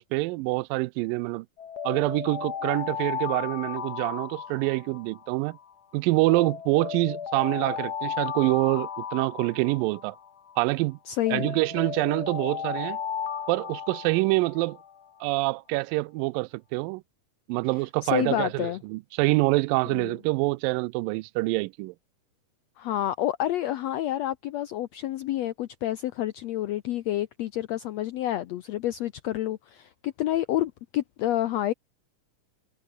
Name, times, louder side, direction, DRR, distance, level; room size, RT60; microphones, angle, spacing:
voice 1, 0.0-1.5 1.8-5.6 5.9-10.2 10.6-11.0 11.3-13.0 13.5-14.8 15.2-17.0 17.5-21.9, right 23 dB, 85° right, 2.3 m, -26 dB
Alarm, 1.6-5.7 6.3-10.7 11.3-15.1, left 7 dB, 65° left, 1.0 m, -35 dB
voice 2, 11.1-11.5 18.0-18.8 19.9-20.2 22.8-31.7, left 13 dB, 80° left, 1.5 m, -29 dB
omnidirectional pair, 3.9 m